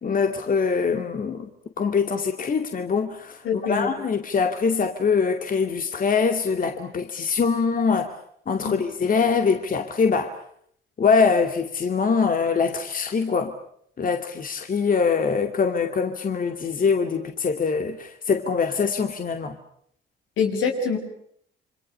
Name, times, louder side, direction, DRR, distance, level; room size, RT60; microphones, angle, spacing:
voice 1, 0.0-1.5 1.8-8.1 8.5-10.4 11.0-13.5 14.0-19.6, left 5 dB, 45° left, 6 dB, 2.4 m, -23 dB
voice 2, 3.4-3.9 8.6-8.8 20.4-21.0, left 5 dB, 85° left, 4 dB, 6.7 m, -24 dB
28.5 x 25.5 x 6.7 m, 0.67 s
cardioid pair, 90°, 20 cm